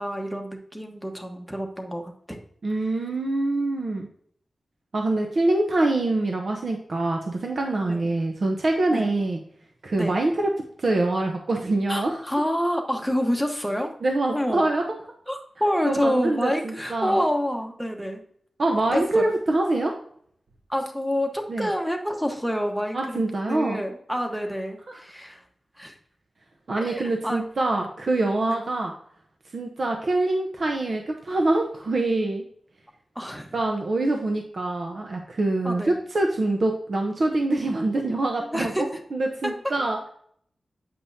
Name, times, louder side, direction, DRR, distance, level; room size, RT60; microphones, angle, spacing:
voice 1, 0.0-2.4 2.9-3.0 5.3-5.4 7.9-8.1 8.9-9.1 10.0-10.2 11.9-13.9 14.3-14.7 15.3-18.2 18.9-19.3 20.7-23.2 23.5-25.4 25.8-26.0 26.8-27.4 28.5-28.6 33.1-33.6 35.6-36.0 38.4-38.8 39.4-39.5, equal, 5° right, 3 dB, 1.2 m, -28 dB
voice 2, 2.6-4.1 4.9-9.4 9.8-10.3 10.8-12.2 14.0-14.8 15.9-17.2 18.6-19.9 21.5-21.7 22.9-23.8 26.7-28.9 29.5-32.4 33.5-38.7 39.1-40.1, right 2 dB, 55° right, 2 dB, 0.8 m, -25 dB
8.6 x 5.3 x 2.7 m, 0.63 s
wide cardioid pair, 90°, 0 cm